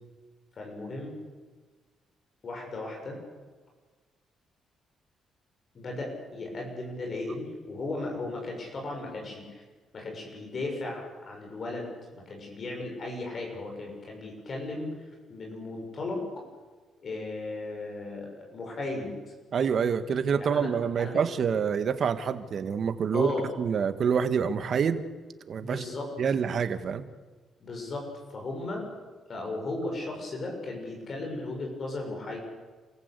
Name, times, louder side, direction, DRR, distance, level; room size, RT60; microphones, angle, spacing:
voice 1, 0.6-1.1 2.4-3.2 5.7-9.6 9.9-16.2 17.0-19.1 20.4-20.7 21.0-21.2 23.1-23.4 25.6-26.1 27.6-28.9 29.3-32.4, left 2 dB, 45° left, 1 dB, 7.6 m, -36 dB
voice 2, 19.5-25.0 25.5-25.8 26.2-27.0, right 6 dB, 55° right, 10 dB, 1.8 m, -27 dB
28.0 x 15.5 x 8.4 m, 1.4 s
cardioid pair, 90°, 0 cm